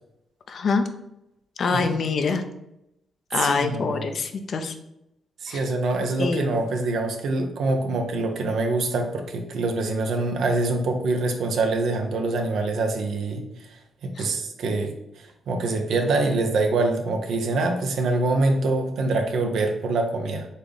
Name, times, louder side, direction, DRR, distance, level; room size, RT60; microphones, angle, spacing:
voice 1, 0.5-0.9 1.6-2.4 3.3-4.7 5.5-5.6 6.2-6.6 14.2-14.3, left 4 dB, 60° left, 7 dB, 0.5 m, -25 dB
voice 2, 3.4-4.1 5.4-13.4 14.0-14.9 15.5-20.5, right 2 dB, 80° right, 4 dB, 0.6 m, -25 dB
4.1 x 3.5 x 3.4 m, 0.85 s
cardioid pair, 75°, 0 cm